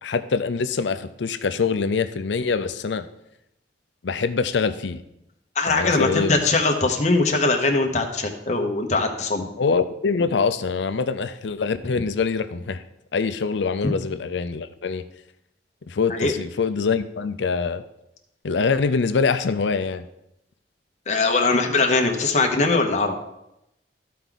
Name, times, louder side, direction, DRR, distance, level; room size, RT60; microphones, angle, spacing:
voice 1, 0.0-3.1 4.0-5.0 5.7-6.4 9.6-12.8 13.1-15.0 15.9-17.8 18.4-20.1, left 5 dB, 80° left, 11 dB, 0.5 m, -24 dB
voice 2, 5.6-9.5 16.1-16.3 21.1-23.1, left 3 dB, 40° left, 3 dB, 1.0 m, -21 dB
13.5 x 4.6 x 3.9 m, 0.84 s
head